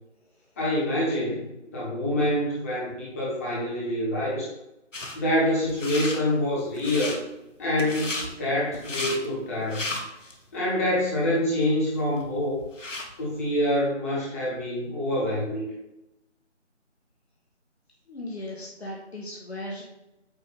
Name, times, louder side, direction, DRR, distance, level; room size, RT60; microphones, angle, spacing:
voice 1, 0.6-4.5 5.1-7.2 7.6-9.8 10.5-12.6 13.2-15.7, left 1 dB, 10° left, -7 dB, 1.2 m, -26 dB
Lint Roller, 4.9-5.2 5.7-6.2 6.7-7.2 7.8-8.3 8.7-9.2 9.6-10.3 10.8-10.9 11.6-11.7 12.0-13.1, left 2 dB, 85° left, 1.4 m, -33 dB
voice 2, 18.1-19.8, left 1 dB, 60° left, -4 dB, 1.5 m, -37 dB
8.1 x 2.7 x 5.2 m, 0.91 s
figure-of-eight pair, 160°, 36 cm